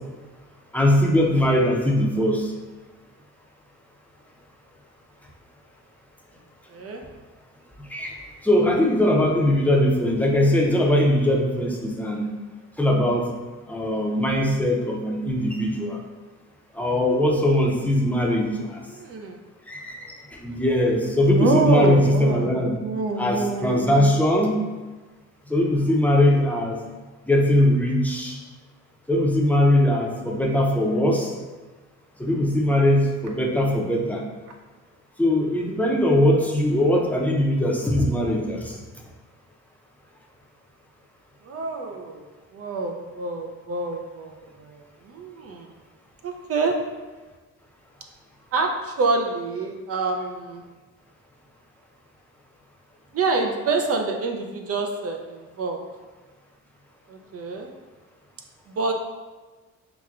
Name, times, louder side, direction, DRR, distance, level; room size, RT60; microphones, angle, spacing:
voice 1, 0.7-2.5 7.8-8.1 8.4-12.3 12.8-13.3 13.7-16.0 16.7-18.8 19.7-22.8 23.2-24.6 25.5-26.8 27.3-28.4 29.1-31.3 32.2-34.2 35.2-38.8, left 1 dB, 5° left, -2 dB, 0.6 m, -21 dB
voice 2, 6.7-7.0 18.9-19.4 21.4-24.1 41.4-42.2 42.5-45.7 46.2-46.8 48.5-50.6 53.1-55.8 57.1-57.7 58.7-58.9, right 3 dB, 50° right, 3 dB, 0.5 m, -26 dB
5.9 x 2.2 x 2.4 m, 1.3 s
cardioid pair, 90°, 30 cm